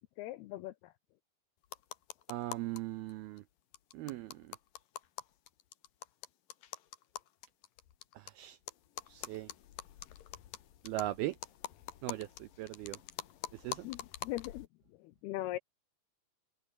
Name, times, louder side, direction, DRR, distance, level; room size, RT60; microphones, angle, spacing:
voice 1, 0.2-0.9 13.8-14.7 15.0-15.6, left 16 dB, 80° left, 2.3 m, -40 dB
sound 1, 1.6-2.8 3.1-3.2 3.4-3.5 3.7-8.3 8.7-14.7, left 11 dB, 60° left, 2.8 m, -46 dB
voice 2, 2.3-3.4 3.9-4.6 8.2-8.6 9.1-9.5 10.8-11.4 12.0-13.0 13.5-13.9, right 16 dB, 85° right, 2.2 m, -39 dB
open air
omnidirectional pair, 5.3 m